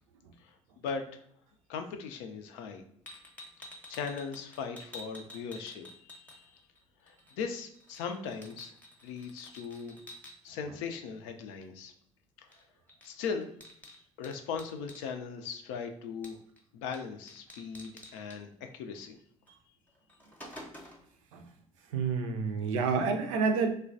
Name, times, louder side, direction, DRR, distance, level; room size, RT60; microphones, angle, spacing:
voice 1, 1.7-2.8 3.9-6.4 7.1-8.7 9.0-10.0 10.4-11.9 13.0-13.5 14.2-16.4 16.7-19.2, left 6 dB, 60° left, 6 dB, 0.4 m, -38 dB
sound 1, 3.1-6.8 7.1-10.3 12.5-12.6 12.9-15.0 16.2-16.6 16.9-17.0 17.3-18.4 19.5-19.6 20.0-21.1, left 1 dB, 10° left, 0.7 m, -50 dB
voice 2, 21.9-23.7, right 5 dB, 70° right, 5 dB, 0.4 m, -29 dB
3.2 x 2.2 x 2.5 m, 0.67 s
figure-of-eight pair, 55°, 17 cm